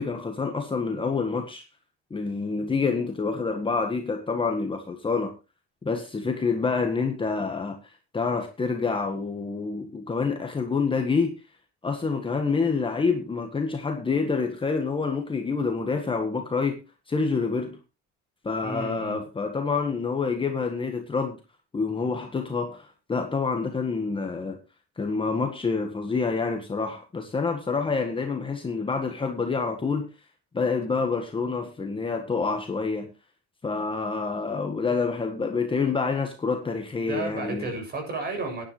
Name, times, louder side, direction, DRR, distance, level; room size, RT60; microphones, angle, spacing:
voice 1, 0.0-1.6 2.1-5.3 5.8-7.8 8.1-11.3 11.8-16.8 17.1-17.8 18.4-21.4 21.7-24.6 25.0-30.0 30.5-33.1 33.6-37.7, left 4 dB, 15° left, 1.6 m, -27 dB
voice 2, 18.6-19.2 37.1-38.6, right 3 dB, 30° right, 6.9 m, -32 dB
16.5 x 10.5 x 3.3 m
cardioid pair, 150°, 30 cm